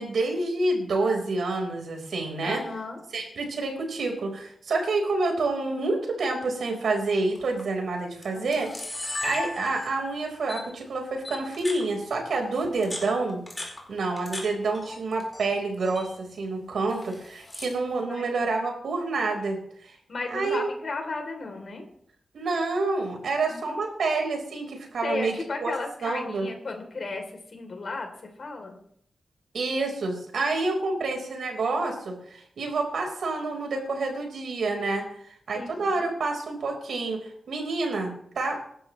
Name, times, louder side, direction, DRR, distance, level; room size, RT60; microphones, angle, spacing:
voice 1, 0.0-2.6 3.1-13.4 13.9-20.0 20.3-20.7 22.3-25.3 25.6-25.7 26.0-26.5 29.5-35.0 35.5-38.6, right 3 dB, 80° right, 2 dB, 4.6 m, -28 dB
voice 2, 2.4-3.0 8.3-8.7 18.1-18.3 20.1-21.9 23.5-23.8 25.0-28.1 28.4-28.8 30.7-31.1 35.5-35.9, left 3 dB, 50° left, 4 dB, 3.4 m, -35 dB
Camera, 7.3-7.6 8.2-8.3 8.5-10.1 10.5-10.6 11.2-11.8 12.6-14.4 14.7-15.5 15.7-16.1 16.9-17.8, left 2 dB, 15° left, 4.7 m, -35 dB
26.5 x 12.5 x 3.2 m, 0.67 s
wide cardioid pair, 165°, 0 cm